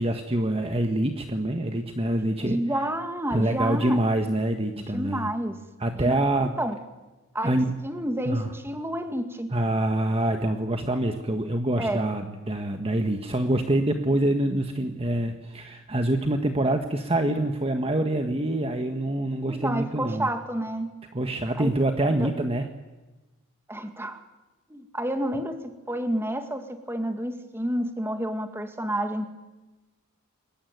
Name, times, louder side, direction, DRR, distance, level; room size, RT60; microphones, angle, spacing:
voice 1, 0.0-2.6 3.3-5.3 5.8-6.5 7.4-7.8 8.3-8.5 9.5-20.3 21.1-22.7, right 1 dB, 25° right, 5 dB, 1.5 m, -25 dB
voice 2, 2.4-4.0 4.9-5.6 6.0-6.1 6.4-6.8 7.3-9.5 11.8-12.1 19.5-20.9 21.6-21.7 22.2-22.3 23.7-24.2 24.7-29.3, right 1 dB, 10° right, 7 dB, 2.2 m, -29 dB
29.0 x 22.0 x 9.4 m, 1.1 s
head